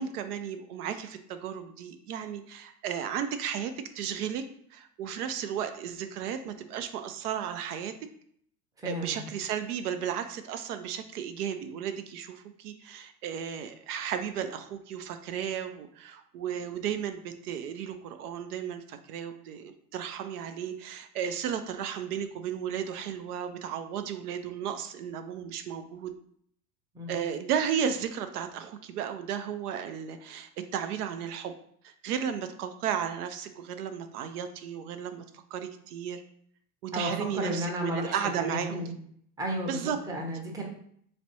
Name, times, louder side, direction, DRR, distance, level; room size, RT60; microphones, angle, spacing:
voice 1, 0.0-4.4 4.7-8.1 8.8-26.1 27.1-31.5 31.8-35.2 35.5-36.2 36.8-38.9 39.7-40.0, right 8 dB, 70° right, 8 dB, 0.5 m, -34 dB
voice 2, 8.8-9.2 26.9-27.2 36.9-38.9 39.4-40.6, equal, 10° right, 0 dB, 0.6 m, -33 dB
3.2 x 3.1 x 2.7 m, 0.65 s
hypercardioid pair, 100°, 48 cm